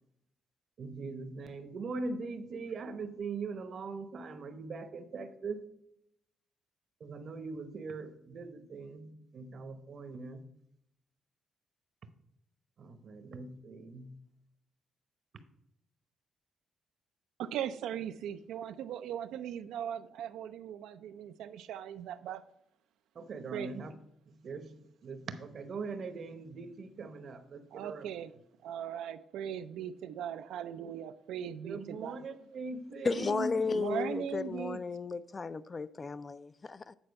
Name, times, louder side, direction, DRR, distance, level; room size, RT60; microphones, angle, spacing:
voice 1, 0.8-5.7 7.0-10.5 12.8-14.2 23.1-23.9 24.3-28.1 31.6-33.6, right 4 dB, 55° right, 0.8 m, -41 dB
voice 2, 17.4-22.4 23.5-23.7 27.7-28.3 28.6-32.2 33.7-34.8, right 9 dB, 85° right, 0.3 m, -39 dB
voice 3, 33.0-36.9, left 4 dB, 30° left, 0.3 m, -34 dB
8.9 x 4.4 x 5.2 m
cardioid pair, 90°, 0 cm